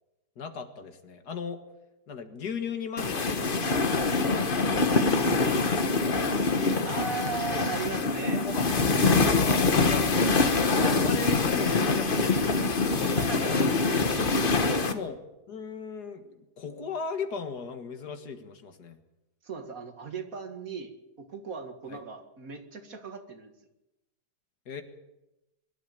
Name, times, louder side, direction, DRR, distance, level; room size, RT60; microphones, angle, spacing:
voice 1, 0.4-1.6 2.1-4.5 4.9-6.5 7.3-7.4 8.4-8.8 9.2-10.5 10.8-13.1 14.7-15.2 15.5-19.0 21.9-22.0 24.7-24.8, left 5 dB, 70° left, 8 dB, 2.1 m, -37 dB
sound 1, 3.0-14.9, left 3 dB, 35° left, 1.3 m, -25 dB
voice 2, 6.9-8.4 10.7-11.0 12.9-13.8 14.2-14.9 19.4-20.9 21.2-23.5, right 5 dB, 55° right, 6 dB, 2.2 m, -37 dB
23.0 x 12.0 x 9.3 m, 0.96 s
omnidirectional pair, 1.8 m